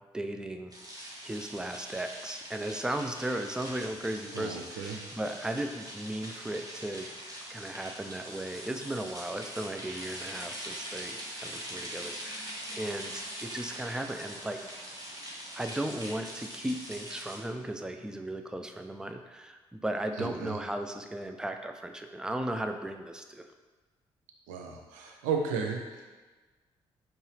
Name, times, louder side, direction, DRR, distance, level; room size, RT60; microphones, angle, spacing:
voice 1, 0.1-0.7 1.2-7.1 7.5-14.8 15.5-23.4, right 1 dB, 5° right, 6 dB, 0.4 m, -36 dB
sound 1, 0.7-17.4, equal, 25° right, 1.3 m, -42 dB
voice 2, 4.3-5.0 20.2-20.6 24.5-26.0, right 5 dB, 75° right, 2 dB, 0.5 m, -34 dB
4.5 x 2.9 x 3.2 m, 1.3 s
hypercardioid pair, 45°, 13 cm